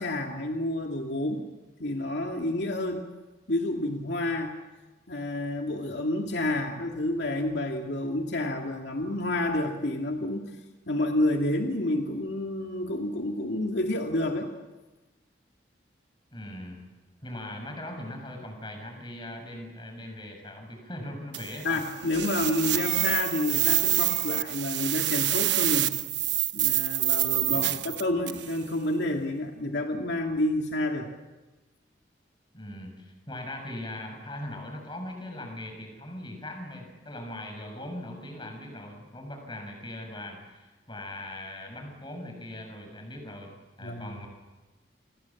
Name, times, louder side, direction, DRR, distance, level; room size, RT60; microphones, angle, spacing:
voice 1, 0.0-1.4 1.8-3.1 3.5-4.6 5.1-10.5 10.9-14.5 21.6-25.9 26.5-31.1 43.8-44.2, left 1 dB, 75° left, 2 dB, 2.4 m, -29 dB
voice 2, 16.3-16.8 17.2-21.9 27.5-28.0 32.5-44.3, left 1 dB, 25° left, 4 dB, 6.8 m, -40 dB
sound 1, 21.3-28.5, right 15 dB, 80° right, 1.1 m, -27 dB
29.5 x 26.5 x 7.3 m, 1.2 s
head